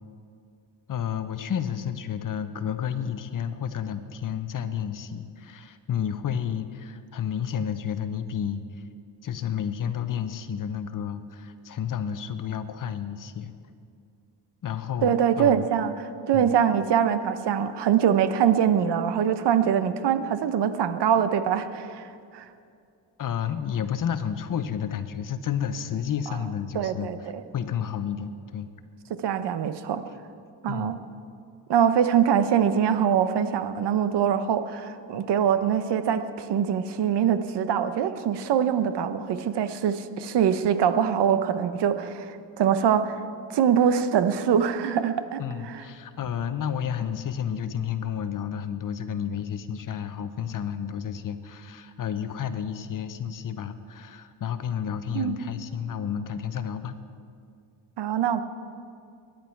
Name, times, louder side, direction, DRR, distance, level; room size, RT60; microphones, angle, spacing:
voice 1, 0.9-8.6 9.2-13.5 14.6-15.7 16.3-16.6 23.2-27.1 27.5-28.7 30.7-31.0 45.4-57.0, left 8 dB, 45° left, 10 dB, 0.9 m, -31 dB
voice 2, 15.0-15.9 16.3-22.1 22.3-22.5 26.3-26.4 26.7-27.2 29.2-30.0 30.6-31.0 31.7-43.2 43.5-45.4 45.7-45.8 55.1-55.4 58.0-58.4, right 8 dB, 65° right, 11 dB, 1.0 m, -23 dB
22.5 x 10.5 x 4.6 m, 2.4 s
cardioid pair, 110°, 44 cm